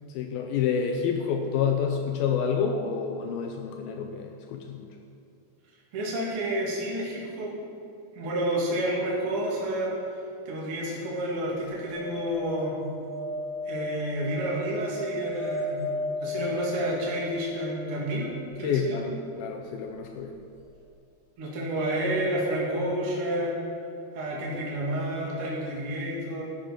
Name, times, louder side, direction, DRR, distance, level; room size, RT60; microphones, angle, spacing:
voice 1, 0.1-4.9 18.6-20.4, left 6 dB, 85° left, 4 dB, 2.2 m, -28 dB
voice 2, 5.9-7.5 8.1-9.9 10.5-12.8 13.7-15.8 16.2-19.1 21.4-23.7 24.1-26.4, right 1 dB, 40° right, -4 dB, 2.4 m, -30 dB
sound 1, 11.9-18.0 20.3-20.4 20.6-20.7, left 2 dB, 50° left, 4.6 m, -35 dB
12.0 x 8.9 x 5.1 m, 2.5 s
omnidirectional pair, 4.8 m